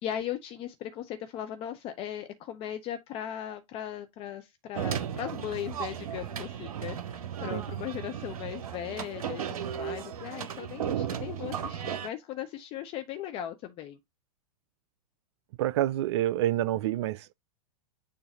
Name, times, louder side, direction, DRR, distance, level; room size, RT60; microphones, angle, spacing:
voice 1, 0.0-14.0, left 10 dB, 30° left, 0.6 m, -38 dB
sound 1, 4.7-12.1, right 9 dB, 60° right, 0.8 m, -35 dB
voice 2, 15.6-17.3, right 13 dB, 45° right, 0.4 m, -27 dB
6.8 x 2.7 x 5.2 m
figure-of-eight pair, 100°, 20 cm